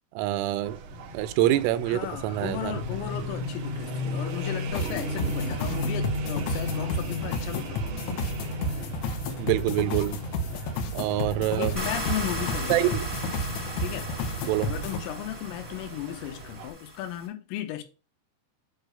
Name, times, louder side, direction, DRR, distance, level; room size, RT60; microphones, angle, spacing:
voice 1, 0.2-0.8 1.1-2.8 9.4-10.2 10.9-11.7 12.7-13.1 14.5-14.7, right 14 dB, 85° right, 3.2 m, -26 dB
sound 1, 0.6-16.7, left 1 dB, 65° right, 3.8 m, -36 dB
voice 2, 1.9-8.1 11.6-12.9 13.8-14.1 14.6-17.8, left 12 dB, 90° left, 3.7 m, -35 dB
sound 2, 4.7-15.0, left 1 dB, 75° left, 2.6 m, -32 dB
sound 3, 11.8-17.3, right 1 dB, 5° right, 2.0 m, -37 dB
9.3 x 3.3 x 6.2 m
omnidirectional pair, 5.7 m